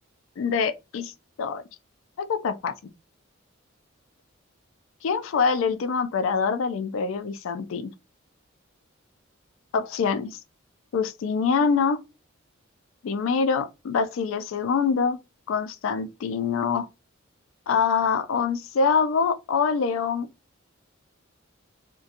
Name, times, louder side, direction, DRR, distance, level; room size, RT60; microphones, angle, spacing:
voice 1, 0.4-1.1 1.4-1.6 2.2-2.7 5.0-7.9 9.7-10.4 10.9-12.0 13.0-15.2 15.5-16.9 17.7-20.3, left 5 dB, 70° left, 0.3 m, -25 dB
2.4 x 2.2 x 2.7 m
head